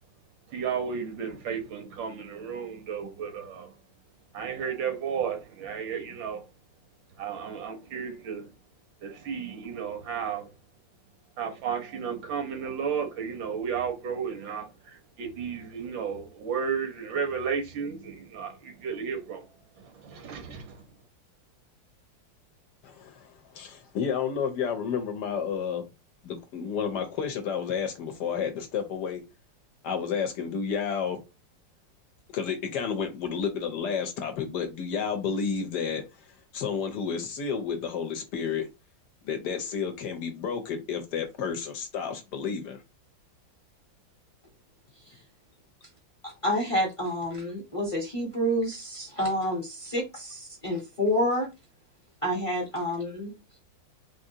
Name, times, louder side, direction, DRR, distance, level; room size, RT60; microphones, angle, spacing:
voice 1, 0.5-3.7 4.3-6.5 7.2-8.5 9.0-10.5 11.4-19.5 19.8-20.8, right 7 dB, 80° right, 1.5 m, -33 dB
voice 2, 22.8-25.8 26.2-29.2 29.8-31.2 32.3-38.7 39.2-42.8, left 6 dB, 70° left, 1.1 m, -31 dB
voice 3, 46.2-51.5 52.2-53.3, equal, 25° left, 0.7 m, -28 dB
3.6 x 2.5 x 2.7 m
omnidirectional pair, 2.1 m